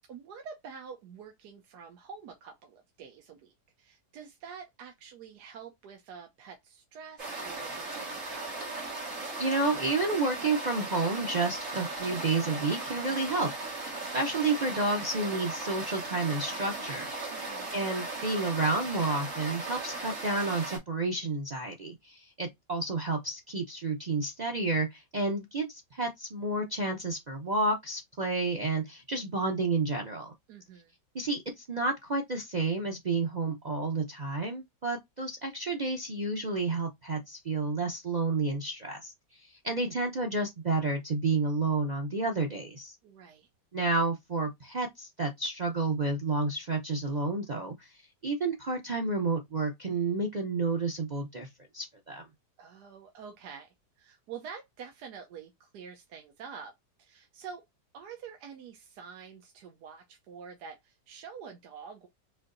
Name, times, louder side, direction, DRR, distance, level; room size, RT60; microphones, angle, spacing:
voice 1, 0.1-8.3 17.3-17.7 30.5-30.9 43.0-43.5 52.6-57.6 57.9-62.1, right 6 dB, 70° right, 1.2 m, -47 dB
sound 1, 7.2-20.8, right 2 dB, 45° right, 2.0 m, -37 dB
voice 2, 9.4-13.8 14.1-17.1 17.7-30.3 31.1-39.1 39.4-42.9 43.7-47.9 48.2-51.5 51.7-52.3, right 3 dB, 85° right, 0.3 m, -30 dB
4.3 x 2.7 x 2.5 m
omnidirectional pair, 1.9 m